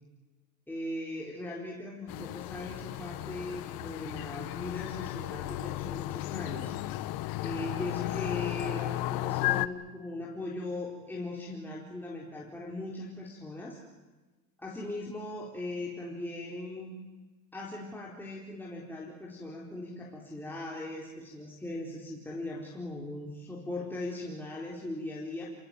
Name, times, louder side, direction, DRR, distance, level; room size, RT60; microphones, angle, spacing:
voice 1, 0.7-6.8 7.4-13.8 14.6-16.9 17.5-25.5, left 2 dB, 5° left, -3 dB, 4.3 m, -39 dB
sound 1, 2.1-9.7, left 17 dB, 60° left, 1.2 m, -34 dB
28.5 x 18.5 x 9.1 m, 1.2 s
cardioid pair, 135°, 40 cm